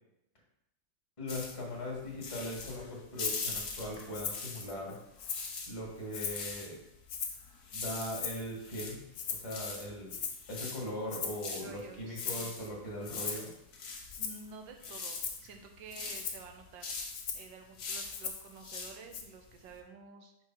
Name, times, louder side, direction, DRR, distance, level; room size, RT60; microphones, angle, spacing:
voice 1, 1.2-5.0 5.7-6.8 7.7-10.2 10.5-13.5, left 1 dB, 20° left, -3 dB, 1.3 m, -40 dB
sound 1, 1.3-4.9 5.2-19.8, left 4 dB, 55° left, 1.4 m, -42 dB
Rattle (instrument), 3.2-3.4 4.1-4.5 4.9-5.6 6.1-6.5 7.1-7.5 8.1-8.6 9.1-9.5 10.1-10.5 11.1-11.5 12.1-12.5 13.1-13.5 14.1-14.5 15.1-15.5 16.1-16.4 17.1-17.5 18.1-18.5 19.1-19.2, left 7 dB, 80° left, 0.7 m, -39 dB
voice 2, 11.5-12.5 14.2-16.9 17.3-20.3, right 5 dB, 75° right, 4 dB, 1.4 m, -51 dB
4.9 x 4.7 x 4.6 m, 0.88 s
omnidirectional pair, 2.2 m